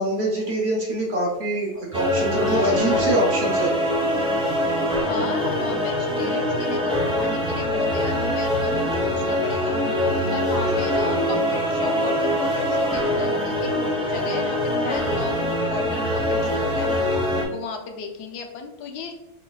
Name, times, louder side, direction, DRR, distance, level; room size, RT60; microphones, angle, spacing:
voice 1, 0.0-3.9 10.5-10.9, right 1 dB, 55° right, -2 dB, 0.8 m, -25 dB
sound 1, 1.9-17.4, left 1 dB, 5° right, 0.6 m, -23 dB
voice 2, 2.4-3.0 5.1-13.7 14.1-19.1, left 5 dB, 85° left, 4 dB, 1.2 m, -34 dB
4.1 x 3.2 x 2.3 m, 1.0 s
omnidirectional pair, 1.7 m